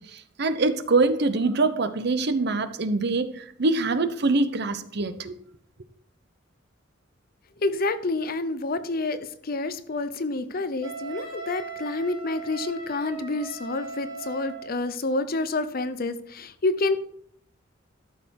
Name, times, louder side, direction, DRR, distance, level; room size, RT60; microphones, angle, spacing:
voice 1, 0.1-5.3, right 3 dB, 60° right, 12 dB, 0.8 m, -24 dB
voice 2, 7.6-17.0, left 2 dB, 50° left, 12 dB, 0.8 m, -28 dB
Wind instrument woodwind instrument, 10.8-14.7, right 4 dB, 30° right, 4.0 m, -38 dB
12.5 x 6.7 x 4.7 m, 0.66 s
head